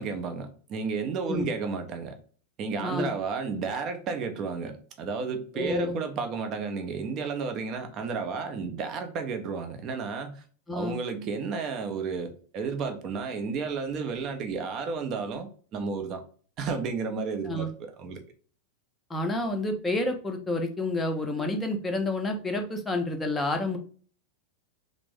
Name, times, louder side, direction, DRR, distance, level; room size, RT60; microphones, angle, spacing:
voice 1, 0.0-2.2 2.6-10.4 10.7-16.2 16.6-18.2, right 5 dB, 35° right, 0.6 m, -32 dB
voice 2, 2.8-3.1 5.5-6.0 10.7-11.0 17.5-17.7 19.1-23.8, left 2 dB, 10° left, 0.6 m, -29 dB
3.4 x 2.0 x 3.2 m
figure-of-eight pair, 90°, 0 cm